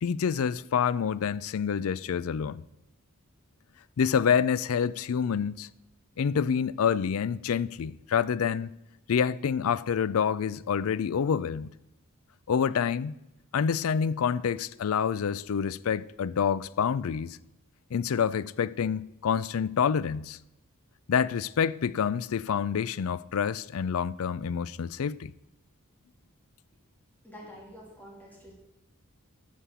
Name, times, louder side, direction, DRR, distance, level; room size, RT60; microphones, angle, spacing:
voice 1, 0.0-2.6 4.0-5.7 6.2-8.7 9.1-11.7 12.5-13.2 13.5-17.4 17.9-20.4 21.1-25.3, left 7 dB, 70° left, 0.4 m, -27 dB
voice 2, 27.2-28.5, equal, 10° left, 2.6 m, -47 dB
11.5 x 6.4 x 6.9 m
head